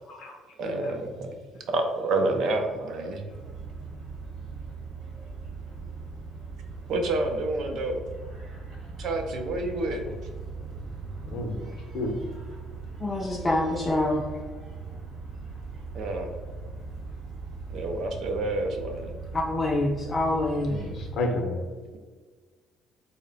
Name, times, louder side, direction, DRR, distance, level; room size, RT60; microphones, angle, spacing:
voice 1, 0.6-1.3 1.7-3.2 6.9-8.0 9.0-10.1 15.9-16.3 17.7-19.1, right 2 dB, 55° right, 4 dB, 0.5 m, -28 dB
sound 1, 3.3-21.1, right 4 dB, 35° right, 1.1 m, -40 dB
voice 2, 11.3-12.1 20.6-21.6, left 2 dB, 50° left, 2 dB, 0.7 m, -31 dB
voice 3, 13.0-14.3 19.3-20.8, left 2 dB, 20° left, -2 dB, 0.3 m, -26 dB
3.8 x 2.1 x 3.9 m, 1.4 s
cardioid pair, 165°, 0 cm